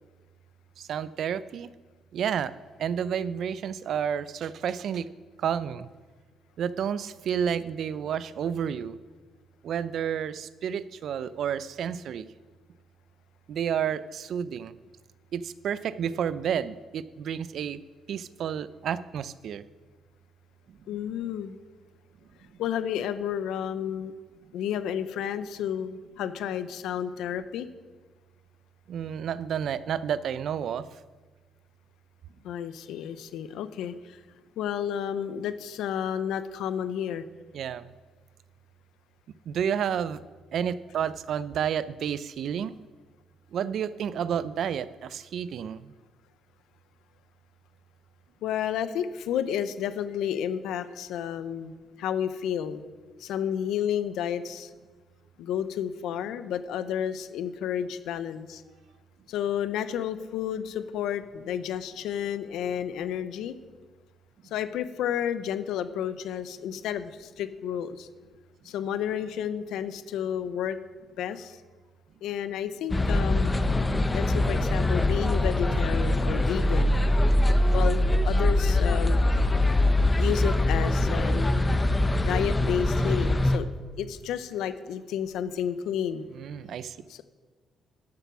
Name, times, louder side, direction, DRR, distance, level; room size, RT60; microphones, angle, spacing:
voice 1, 0.8-1.7 2.1-2.5 2.8-5.1 5.4-5.9 6.6-9.0 9.6-12.3 13.5-14.7 15.3-17.8 18.1-19.6 28.9-30.9 37.5-37.8 39.5-40.2 40.5-42.8 43.5-45.9 86.4-87.0, right 8 dB, 70° right, 16 dB, 0.4 m, -30 dB
voice 2, 20.9-21.6 22.6-24.1 24.5-27.7 32.4-34.2 34.6-37.2 48.4-51.7 52.0-52.8 53.2-54.7 55.4-58.6 59.3-63.6 64.5-68.1 68.6-70.8 71.2-71.6 72.2-73.5 74.1-77.0 77.7-79.3 80.2-81.5 82.3-83.7 84.0-86.3 87.1-87.2, left 9 dB, 85° left, 13 dB, 0.6 m, -31 dB
sound 1, 72.9-83.6, left 1 dB, 20° left, 0.8 m, -23 dB
11.5 x 6.9 x 6.1 m, 1.3 s
cardioid pair, 90°, 0 cm